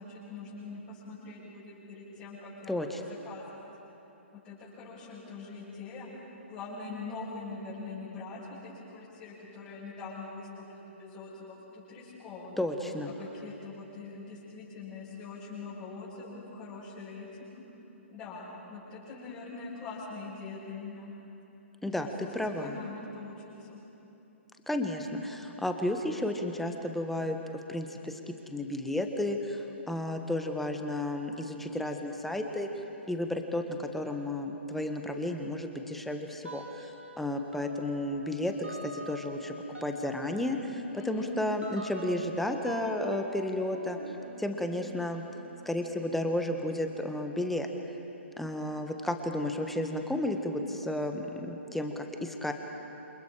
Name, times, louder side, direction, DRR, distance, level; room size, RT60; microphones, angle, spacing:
voice 1, 0.0-3.7 4.3-6.1 6.5-12.7 13.0-17.5 18.1-21.1 21.9-22.1 22.6-23.8 40.9-41.3, left 4 dB, 25° left, -10 dB, 7.0 m, -43 dB
voice 2, 2.7-3.0 12.6-13.1 21.8-22.8 24.7-27.4 27.7-32.7 33.1-39.5 39.8-44.0 44.4-45.2 45.6-47.7 48.4-52.5, left 1 dB, 5° left, 4 dB, 1.5 m, -32 dB
sound 1, 36.4-37.2 37.5-47.9, right 1 dB, 85° right, 3.7 m, -45 dB
28.5 x 27.0 x 5.0 m, 3.0 s
figure-of-eight pair, 125°, 7 cm